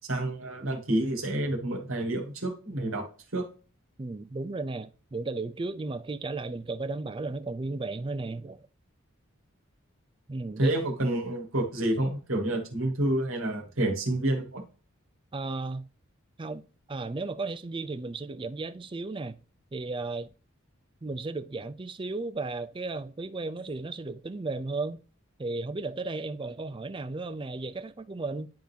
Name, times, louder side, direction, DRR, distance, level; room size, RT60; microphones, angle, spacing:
voice 1, 0.0-3.1 3.3-3.5 10.6-14.6, right 1 dB, 75° right, 1.9 m, -28 dB
voice 2, 4.0-8.6 10.3-10.8 15.3-15.9 16.4-16.6 16.9-19.4 19.7-20.3 21.0-25.0 25.4-28.5, right 3 dB, 25° right, 0.4 m, -34 dB
10.5 x 3.9 x 2.8 m
head